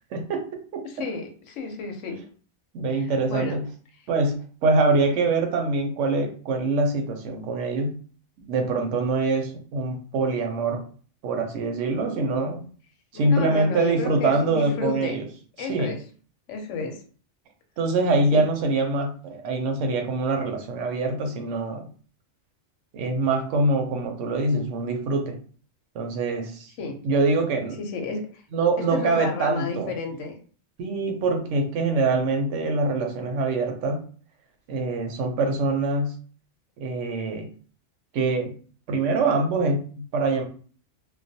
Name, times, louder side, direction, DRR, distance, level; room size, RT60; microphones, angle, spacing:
voice 1, 0.1-0.9 2.7-3.6 4.1-8.0 8.4-10.8 11.2-12.6 13.1-15.2 15.7-16.0 17.8-21.9 22.9-25.4 25.9-26.7 27.0-27.8 28.5-29.9 30.8-34.0 34.7-36.2 36.8-37.5 38.1-38.5 38.9-40.4, right 3 dB, 85° right, 5 dB, 0.9 m, -24 dB
voice 2, 0.8-2.2 2.9-3.6 13.1-15.2 15.6-16.0 16.5-17.0 18.3-18.5 26.8-27.0 27.8-28.4 28.8-30.4, left 4 dB, 90° left, 4 dB, 0.9 m, -32 dB
2.3 x 2.1 x 2.6 m, 0.43 s
omnidirectional pair, 1.2 m